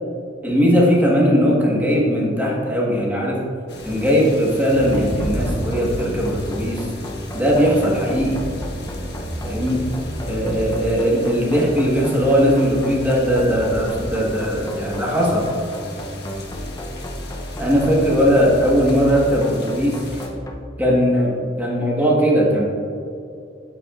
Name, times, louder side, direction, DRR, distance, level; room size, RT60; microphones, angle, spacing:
voice 1, 0.4-3.4 3.8-6.8 7.3-8.4 9.4-9.8 10.2-15.5 17.6-19.9 20.8-22.6, equal, 10° right, -4 dB, 1.4 m, -19 dB
sound 1, 3.7-20.3, left 1 dB, 60° left, 1.3 m, -35 dB
sound 2, 4.9-20.5, equal, 15° left, 0.6 m, -32 dB
8.5 x 8.2 x 2.5 m, 2.5 s
head